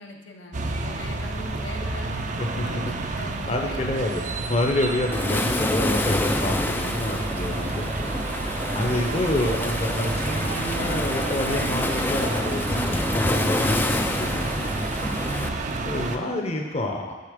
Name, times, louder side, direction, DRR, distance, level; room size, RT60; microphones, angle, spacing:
voice 1, 0.0-4.2, left 1 dB, 80° left, 2 dB, 0.9 m, -42 dB
sound 1, 0.5-16.2, right 3 dB, 40° right, 0.5 m, -30 dB
voice 2, 2.4-3.1 3.5-8.1 8.7-14.7 15.2-17.1, left 1 dB, 35° left, 1 dB, 0.7 m, -28 dB
Waves surf, 5.1-15.5, left 2 dB, 10° left, 0.3 m, -28 dB
6.6 x 6.5 x 5.1 m, 1.3 s
head